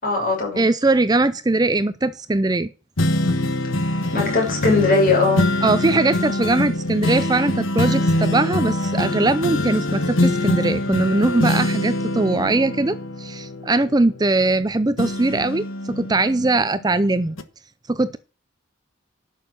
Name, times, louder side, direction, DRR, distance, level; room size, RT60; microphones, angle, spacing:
voice 1, 0.0-0.6 4.1-5.5, left 3 dB, 45° left, 6.2 m, -19 dB
voice 2, 0.6-2.7 5.6-17.4 17.9-18.2, right 2 dB, 20° right, 0.5 m, -20 dB
sound 1, 3.0-14.6 15.0-16.9 17.4-17.5, left 1 dB, 85° left, 1.4 m, -24 dB
11.5 x 6.6 x 6.8 m
head